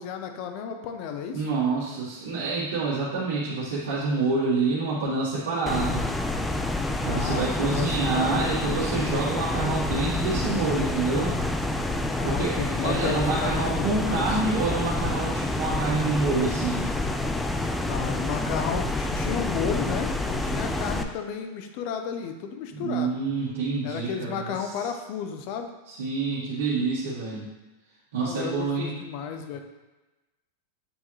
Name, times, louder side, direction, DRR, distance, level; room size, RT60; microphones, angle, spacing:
voice 1, 0.0-1.5 7.1-7.9 8.1-8.7 12.1-14.4 17.9-23.1 23.8-25.7 28.2-29.6, left 7 dB, 50° left, 6 dB, 0.7 m, -33 dB
voice 2, 1.3-6.1 7.0-11.3 12.2-16.8 22.7-24.9 25.9-27.5 28.1-29.0, right 3 dB, 75° right, -9 dB, 1.7 m, -27 dB
sound 1, 5.7-21.0, left 2 dB, 5° left, 0.4 m, -28 dB
7.9 x 3.7 x 3.2 m, 1.1 s
hypercardioid pair, 130°, 0 cm